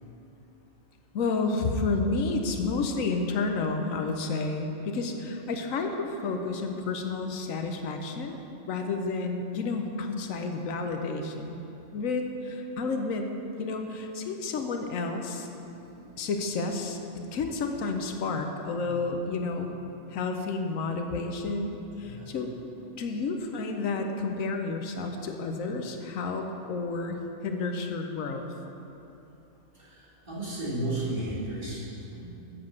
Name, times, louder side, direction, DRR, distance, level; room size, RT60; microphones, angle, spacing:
voice 1, 1.1-8.4 8.7-11.6 11.9-13.3 13.6-15.5 16.2-17.0 17.3-19.7 20.1-22.5 23.0-27.2 27.4-28.5, left 3 dB, 85° left, 4 dB, 1.2 m, -30 dB
voice 2, 15.7-16.1 18.7-18.9 19.5-19.6 19.9-20.0 22.0-22.3 29.7-32.2, right 1 dB, 35° right, -9 dB, 2.6 m, -35 dB
8.0 x 7.3 x 6.3 m, 3.0 s
omnidirectional pair, 1.4 m